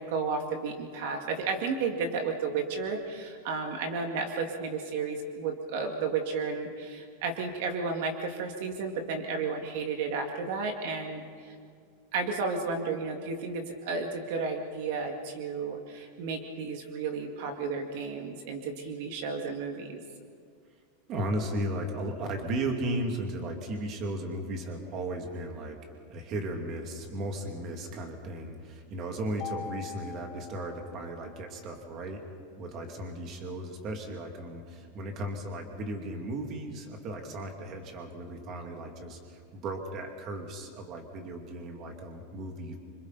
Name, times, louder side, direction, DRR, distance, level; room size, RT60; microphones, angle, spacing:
voice 1, 0.0-11.5 12.1-20.0, right 4 dB, 55° right, 4 dB, 2.1 m, -33 dB
voice 2, 21.1-25.8 26.1-32.3 32.6-42.8, right 1 dB, 30° right, 3 dB, 2.4 m, -35 dB
Mallet percussion, 29.4-31.6, left 9 dB, 35° left, 1.0 m, -43 dB
28.0 x 26.0 x 4.1 m, 2.2 s
supercardioid pair, 170°, 0 cm